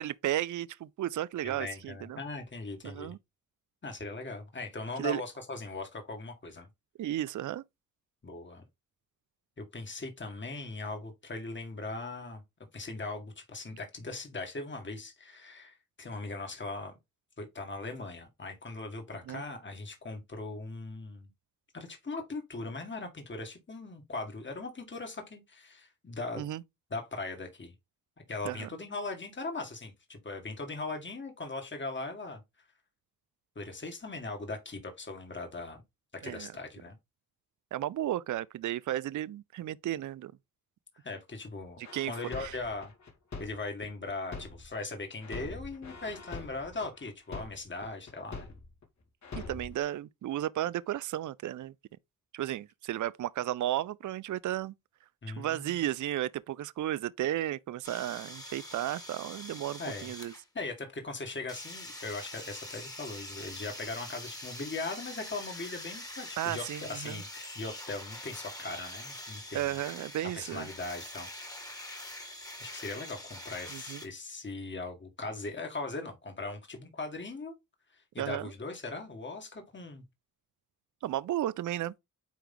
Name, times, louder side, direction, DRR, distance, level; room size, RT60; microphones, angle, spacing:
voice 1, 0.0-2.2 2.8-3.2 5.0-5.2 7.0-7.6 19.3-19.4 26.4-26.6 28.4-28.7 36.2-36.5 37.7-40.3 41.8-42.6 49.3-51.7 52.3-54.7 55.4-60.3 66.4-67.2 69.5-70.7 73.7-74.0 78.2-78.5 81.0-81.9, right 13 dB, 60° right, 0.5 m, -34 dB
voice 2, 1.4-3.1 3.8-6.7 8.2-8.6 9.6-12.4 12.7-16.9 17.4-21.3 21.7-26.5 26.9-27.7 28.3-32.4 33.6-35.8 36.1-37.0 41.0-41.8 42.1-42.9 43.4-48.5 55.2-55.8 59.8-60.1 60.5-69.7 70.3-71.3 71.7-72.2 72.6-77.5 78.1-80.0, left 3 dB, 35° left, 2.0 m, -39 dB
sound 1, 41.8-44.8 45.2-48.8 49.2-49.8, left 3 dB, 55° left, 2.2 m, -43 dB
sound 2, 57.8-60.5 61.5-74.1, left 1 dB, 10° left, 1.8 m, -44 dB
9.3 x 3.4 x 3.8 m
cardioid pair, 95°, 34 cm